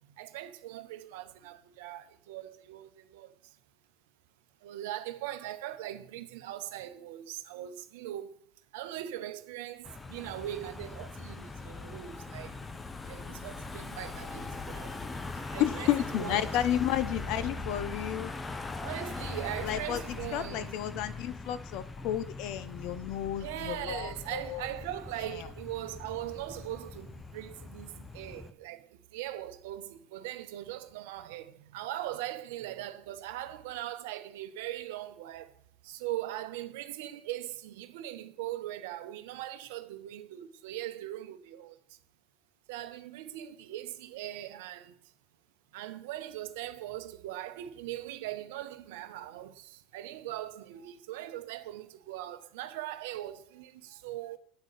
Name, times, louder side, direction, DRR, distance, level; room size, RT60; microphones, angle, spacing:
voice 1, 0.2-3.3 4.6-8.3 8.7-12.5 13.1-15.0 15.5-16.5 18.8-20.7 23.4-28.9 29.1-35.5 35.8-41.7 42.7-44.9 45.7-54.4, right 13 dB, 75° right, 0.8 m, -40 dB
Car passing by / Engine, 9.8-28.5, left 3 dB, 20° left, 0.7 m, -41 dB
voice 2, 15.6-18.3 19.6-20.0 20.3-24.7 25.2-25.5, left 11 dB, 60° left, 0.7 m, -32 dB
9.4 x 3.8 x 6.7 m
hypercardioid pair, 90°, 0 cm